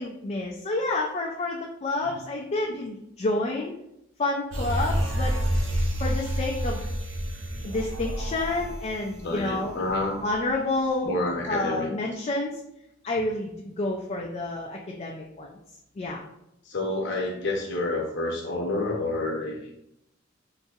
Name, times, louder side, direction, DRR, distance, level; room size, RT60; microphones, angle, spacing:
voice 1, 0.0-3.7 4.2-5.4 6.0-6.8 7.6-9.7 10.2-11.1 11.5-12.6 13.0-15.5 16.0-16.2, left 2 dB, 35° left, -1 dB, 0.3 m, -29 dB
sound 1, 4.5-10.1 10.5-10.6, equal, 70° right, 0.6 m, -29 dB
voice 2, 9.2-10.2 11.0-11.9 16.6-19.7, left 2 dB, 65° left, 0 dB, 0.8 m, -29 dB
3.9 x 2.6 x 2.4 m, 0.82 s
head